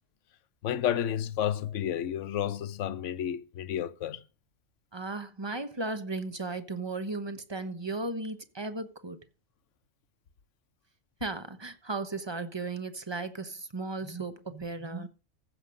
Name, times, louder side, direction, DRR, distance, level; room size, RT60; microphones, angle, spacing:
voice 1, 0.6-4.2, left 10 dB, 75° left, 1.1 m, -31 dB
voice 2, 4.9-9.2 11.2-15.1, right 3 dB, 25° right, 1.0 m, -35 dB
15.0 x 6.6 x 5.1 m
omnidirectional pair, 1.3 m